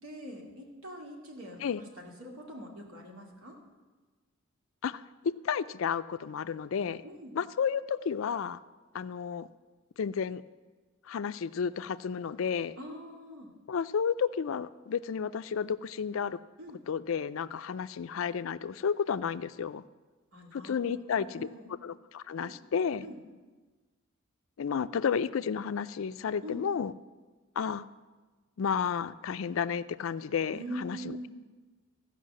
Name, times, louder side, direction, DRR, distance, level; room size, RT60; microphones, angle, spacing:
voice 1, 0.0-3.6 7.0-7.4 12.8-13.5 16.6-16.8 20.3-21.7 22.4-22.5 23.0-23.2 26.4-26.7 30.5-31.3, equal, 85° right, 0 dB, 2.2 m, -43 dB
voice 2, 4.8-7.0 7.3-8.6 8.9-9.5 10.0-10.4 11.1-12.8 13.7-16.4 16.9-19.8 20.5-21.5 21.8-23.0 24.6-26.9 27.6-27.9 28.6-31.2, left 7 dB, 70° left, 15 dB, 0.4 m, -32 dB
15.0 x 5.5 x 7.5 m, 1.3 s
head